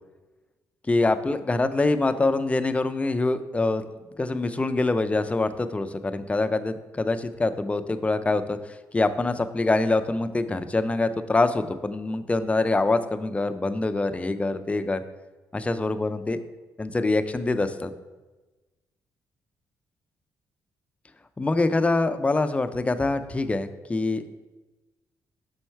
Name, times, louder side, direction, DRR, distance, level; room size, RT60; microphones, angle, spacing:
voice 1, 0.9-3.8 4.2-15.0 15.5-16.4 16.8-17.9 21.4-24.3, left 2 dB, 20° left, 10 dB, 0.4 m, -25 dB
6.3 x 4.4 x 4.5 m, 1.2 s
cardioid pair, 85°, 7 cm